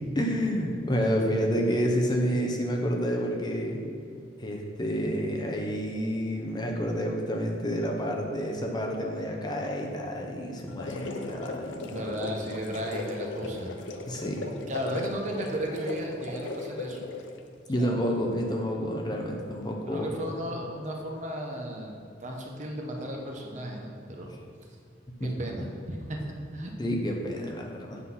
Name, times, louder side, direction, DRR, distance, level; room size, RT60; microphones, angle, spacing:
voice 1, 0.2-3.8 4.4-12.0 14.1-14.6 17.7-20.1 25.2-25.3 26.8-28.0, equal, 25° left, 1 dB, 0.6 m, -29 dB
sound 1, 10.6-17.4, left 3 dB, 80° left, 0.6 m, -37 dB
voice 2, 11.9-13.7 14.6-17.0 17.7-17.9 19.9-24.3 25.2-26.2 26.5-26.7, equal, 40° right, 1 dB, 0.9 m, -35 dB
7.9 x 4.1 x 5.6 m, 2.3 s
head